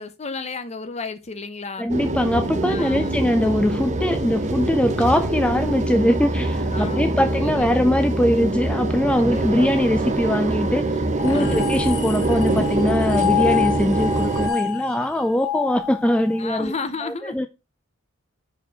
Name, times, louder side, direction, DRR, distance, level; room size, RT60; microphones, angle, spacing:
voice 1, 0.0-1.9 2.7-3.2 6.7-7.9 9.2-9.7 11.3-11.7 16.4-17.5, left 4 dB, 30° left, 0.8 m, -33 dB
voice 2, 1.8-10.9 11.2-16.7 17.0-17.5, left 1 dB, 5° left, 0.3 m, -22 dB
sound 1, 1.9-14.5, right 2 dB, 35° right, 0.9 m, -24 dB
sound 2, 11.2-16.6, left 9 dB, 70° left, 1.0 m, -27 dB
5.0 x 4.4 x 6.1 m
head